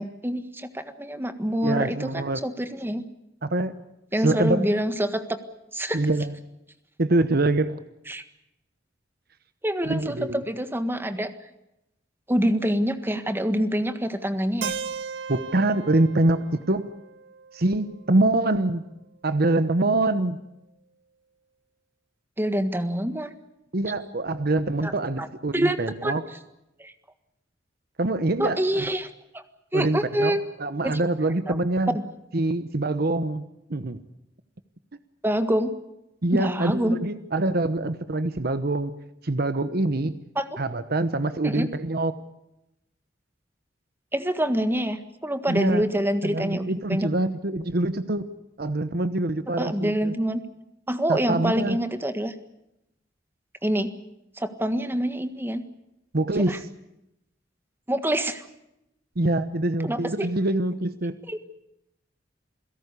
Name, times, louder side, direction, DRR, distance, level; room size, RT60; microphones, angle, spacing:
voice 1, 0.0-3.0 4.1-5.4 5.7-6.0 8.1-8.2 9.6-11.3 12.3-14.7 22.4-23.3 24.8-24.9 25.2-25.3 25.5-26.1 26.8-26.9 28.4-29.4 29.7-30.4 31.5-31.6 35.2-35.7 36.3-37.0 40.3-40.5 41.4-41.7 44.1-47.1 49.6-50.4 50.9-52.3 53.6-53.9 54.4-55.6 56.5-56.6 57.9-58.4 59.8-60.3 61.3-61.4, equal, 10° right, 9 dB, 1.6 m, -26 dB
voice 2, 1.6-2.4 3.4-3.8 4.2-4.7 5.9-6.3 7.0-7.8 9.9-10.4 15.3-16.9 17.5-18.9 19.2-20.4 23.7-26.2 28.0-28.9 29.7-32.0 32.3-33.4 33.7-34.0 36.2-38.9 39.2-40.2 40.6-42.1 45.5-45.8 46.2-48.3 48.6-50.1 51.1-51.8 56.1-56.7 59.2-61.2, right 2 dB, 60° right, 11 dB, 1.1 m, -25 dB
Keyboard (musical), 14.6-18.5, right 6 dB, 90° right, 1.0 m, -37 dB
28.5 x 17.0 x 8.4 m, 0.87 s
head